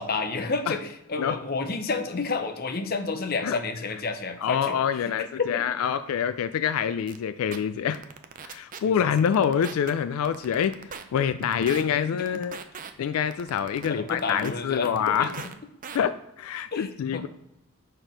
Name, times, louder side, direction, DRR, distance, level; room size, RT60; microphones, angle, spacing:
voice 1, 0.0-4.8 5.4-5.6 8.9-9.0 13.8-15.3 16.7-17.3, left 4 dB, 45° left, 7 dB, 0.6 m, -30 dB
voice 2, 4.4-8.0 8.4-12.6 13.0-15.3 15.9-17.3, left 8 dB, 80° left, 13 dB, 0.3 m, -26 dB
sound 1, 7.1-7.2 7.5-7.6 7.9-8.8 9.1-9.9 10.2-11.0 11.4-11.8 12.3-12.9 13.3-14.5 14.8-15.5 15.8-16.0, right 6 dB, 40° right, 0.4 m, -39 dB
6.1 x 4.3 x 5.1 m, 0.86 s
head